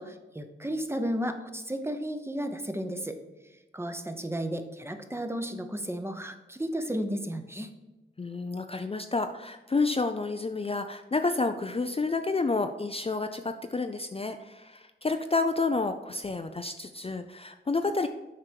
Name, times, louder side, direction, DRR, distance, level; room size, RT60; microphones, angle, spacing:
voice 1, 0.0-3.2 3.7-7.7, equal, 10° right, 7 dB, 0.8 m, -33 dB
voice 2, 8.2-18.1, left 3 dB, 30° left, 7 dB, 0.4 m, -30 dB
7.6 x 4.6 x 4.6 m, 1.1 s
wide cardioid pair, 60°, 20 cm